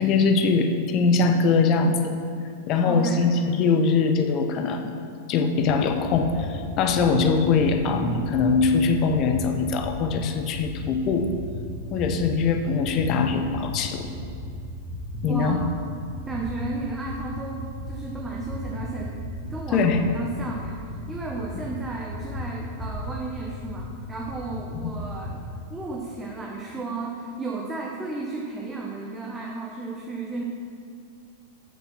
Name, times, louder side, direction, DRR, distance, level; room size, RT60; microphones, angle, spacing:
voice 1, 0.0-2.1 2.7-4.9 5.3-11.3 11.9-14.1 15.2-15.6 19.7-20.0 21.5-21.6 24.7-24.9, left 4 dB, 35° left, 6 dB, 0.8 m, -22 dB
voice 2, 2.9-3.3 15.3-15.6 16.3-19.2 19.5-25.4 25.7-30.4, right 3 dB, 10° right, -1 dB, 1.0 m, -34 dB
sound 1, 5.5-25.4, left 1 dB, 10° left, 2.1 m, -36 dB
8.4 x 6.6 x 6.0 m, 2.4 s
figure-of-eight pair, 95°, 0 cm